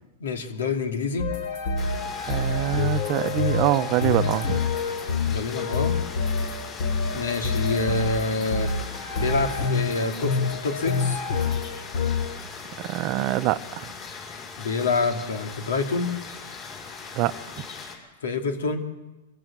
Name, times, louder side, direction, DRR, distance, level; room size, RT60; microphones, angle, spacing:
voice 1, 0.2-1.3 5.3-6.0 7.1-8.7 9.2-11.2 14.6-16.1 18.2-18.8, left 4 dB, 85° left, 5 dB, 2.8 m, -27 dB
sound 1, 1.2-12.4, left 4 dB, 60° left, 3.1 m, -27 dB
sound 2, 1.8-17.9, left 5 dB, 35° left, 5.9 m, -39 dB
voice 2, 2.3-4.6 12.9-13.6 17.2-17.3, right 15 dB, 40° right, 13 dB, 0.8 m, -24 dB
25.0 x 15.5 x 7.5 m, 1.1 s
hypercardioid pair, 140°, 0 cm